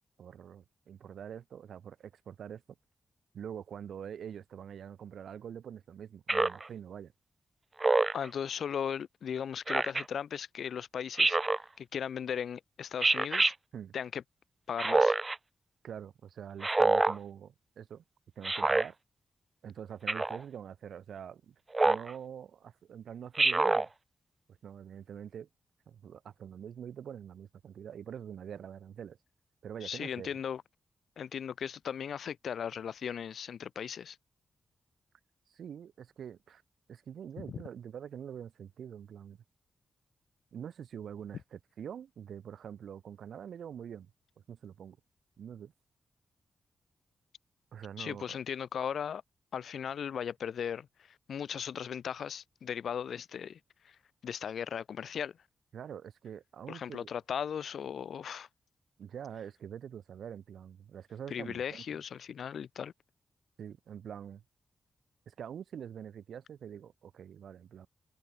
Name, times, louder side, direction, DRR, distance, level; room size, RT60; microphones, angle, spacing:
voice 1, 0.2-2.6 3.3-7.1 13.7-13.9 15.8-18.0 18.4-19.0 19.6-21.5 21.8-23.9 24.6-25.5 25.9-29.2 29.6-30.4 35.5-36.6 36.9-39.4 40.5-44.1 44.5-45.0 45.4-45.7 47.7-48.4 55.7-57.1 59.0-61.8 63.6-64.4 65.3-67.9, right 8 dB, 85° right, 4.3 m, -45 dB
Speech synthesizer, 6.3-6.7 7.8-8.3 9.7-10.0 11.2-11.6 13.0-13.5 14.8-15.4 16.6-17.2 18.4-18.9 20.1-20.4 21.7-22.1 23.4-23.9, right 3 dB, 30° right, 0.8 m, -26 dB
voice 2, 8.1-11.4 11.8-13.5 13.9-14.2 14.7-15.1 29.8-30.6 31.2-34.2 37.4-37.6 48.0-49.2 49.5-53.6 53.8-54.0 54.2-55.4 56.7-58.5 61.3-62.9, left 8 dB, 80° left, 3.3 m, -37 dB
cardioid pair, 80°, 0 cm